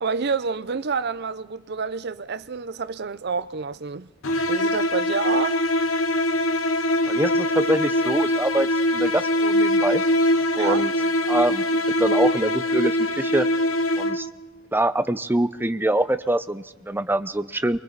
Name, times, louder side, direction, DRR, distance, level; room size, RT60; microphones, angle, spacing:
voice 1, 0.0-4.1 4.5-5.6 10.6-10.9, right 5 dB, 55° right, 0.6 m, -28 dB
sound 1, 4.2-14.5, left 1 dB, 90° left, 1.1 m, -22 dB
voice 2, 7.1-10.0 10.5-10.9 11.3-11.6 12.0-13.5 14.0-14.3 14.7-17.8, right 1 dB, 10° right, 0.7 m, -24 dB
28.5 x 23.5 x 4.1 m
head